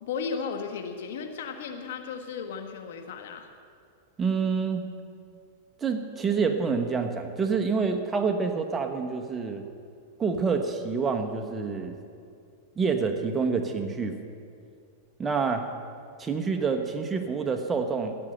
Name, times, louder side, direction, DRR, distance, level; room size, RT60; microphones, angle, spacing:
voice 1, 0.0-3.5, left 6 dB, 75° left, 5 dB, 1.4 m, -35 dB
voice 2, 4.2-4.9 5.8-9.6 10.2-12.0 12.8-14.2 15.2-15.7 16.2-18.2, right 5 dB, 20° right, 5 dB, 1.1 m, -27 dB
14.0 x 9.9 x 7.9 m, 2.4 s
hypercardioid pair, 130°, 0 cm